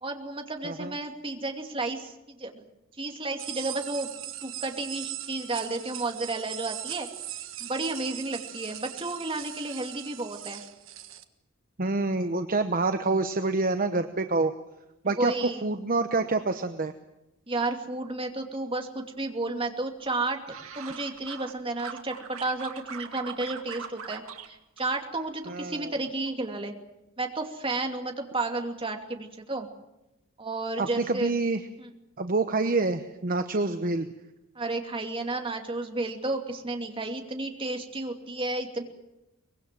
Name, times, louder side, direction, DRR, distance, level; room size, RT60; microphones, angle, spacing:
voice 1, 0.0-2.5 3.0-4.1 4.4-7.1 7.6-10.6 15.1-15.6 17.5-20.4 20.7-26.7 27.2-29.7 30.4-31.3 31.8-31.9 34.5-38.8, right 2 dB, 25° right, 4 dB, 2.6 m, -32 dB
sound 1, 3.4-11.2, right 12 dB, 65° right, 1.6 m, -40 dB
voice 2, 11.8-14.5 15.0-16.9 25.5-25.9 30.8-31.6 32.2-34.1, right 3 dB, 40° right, 8 dB, 1.0 m, -27 dB
sound 2, 20.1-21.5 21.8-24.5 24.8-25.5 25.9-26.3, right 6 dB, 85° right, 2.6 m, -42 dB
24.0 x 21.5 x 7.6 m, 0.94 s
head